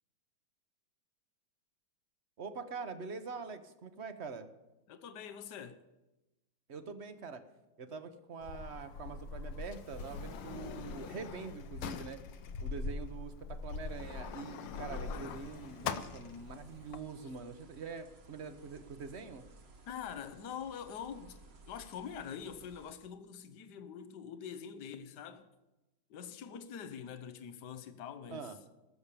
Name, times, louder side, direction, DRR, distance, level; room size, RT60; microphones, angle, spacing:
voice 1, 2.4-4.5 6.7-7.4 7.8-12.2 12.6-19.5 28.3-28.6, right 5 dB, 45° right, 1.1 m, -44 dB
voice 2, 4.9-5.8 15.1-15.5 19.9-21.4 21.7-25.5 26.1-28.5, left 7 dB, 65° left, 1.5 m, -45 dB
Sliding door, 8.4-17.0, left 5 dB, 80° left, 1.6 m, -42 dB
sound 1, 15.3-22.9, right 2 dB, 65° right, 2.7 m, -59 dB
20.5 x 7.2 x 6.9 m
omnidirectional pair, 2.0 m